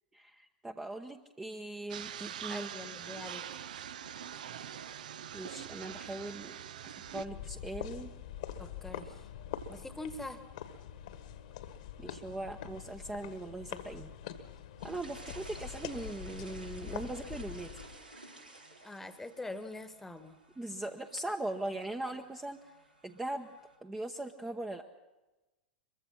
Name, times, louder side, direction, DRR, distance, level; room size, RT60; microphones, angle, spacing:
voice 1, 0.1-2.7 5.3-6.6 7.1-8.1 12.0-14.1 14.8-18.0 20.6-22.6 23.0-23.5 23.8-24.8, right 2 dB, 10° right, 3 dB, 1.0 m, -40 dB
sound 1, 1.9-7.3, right 9 dB, 60° right, 0.8 m, -43 dB
voice 2, 2.5-3.6 8.6-9.2 9.7-10.4 18.8-20.4, left 2 dB, 5° left, 11 dB, 1.4 m, -44 dB
sound 2, 7.1-18.0, left 10 dB, 55° left, 1.6 m, -44 dB
sound 3, 14.8-23.8, right 2 dB, 90° right, 3.8 m, -54 dB
23.5 x 22.5 x 5.8 m, 1.1 s
figure-of-eight pair, 95°, 5 cm